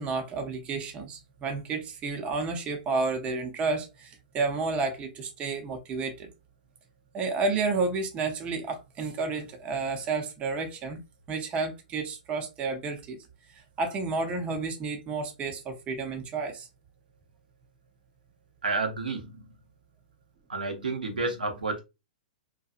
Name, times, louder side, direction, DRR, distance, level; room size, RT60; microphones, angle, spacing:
voice 1, 0.0-6.3 7.1-11.0 11.3-13.2 13.8-16.7, right 4 dB, 25° right, 0.6 m, -31 dB
voice 2, 18.6-19.4 20.5-21.8, right 3 dB, 90° right, 0.7 m, -30 dB
2.7 x 2.3 x 2.3 m
hypercardioid pair, 115°, 5 cm